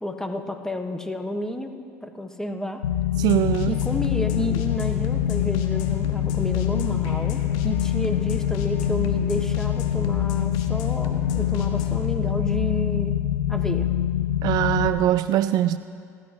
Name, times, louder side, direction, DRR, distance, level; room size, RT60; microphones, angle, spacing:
voice 1, 0.0-1.7 2.0-2.8 3.7-13.2 13.5-13.9, left 1 dB, 5° left, 6 dB, 1.4 m, -31 dB
sound 1, 2.8-14.9, left 10 dB, 85° left, 0.8 m, -24 dB
sound 2, 3.1-12.1, left 7 dB, 65° left, 1.4 m, -37 dB
voice 2, 3.2-3.8 14.4-15.8, right 13 dB, 55° right, 14 dB, 0.4 m, -22 dB
29.0 x 12.5 x 3.1 m, 2.2 s
hypercardioid pair, 70°, 8 cm